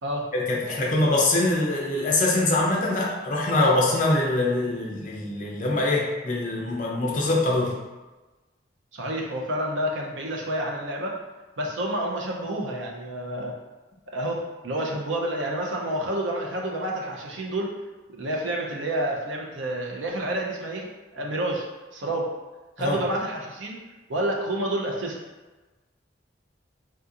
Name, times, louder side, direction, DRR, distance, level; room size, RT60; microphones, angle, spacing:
voice 1, 0.3-7.7 22.8-23.0, left 2 dB, 45° left, -3 dB, 0.6 m, -23 dB
voice 2, 8.9-11.2 11.6-13.5 14.1-17.7 18.2-21.6 21.9-22.3 22.8-23.8 24.1-25.2, right 1 dB, 85° right, -1 dB, 0.6 m, -29 dB
3.5 x 2.8 x 2.4 m, 1.2 s
head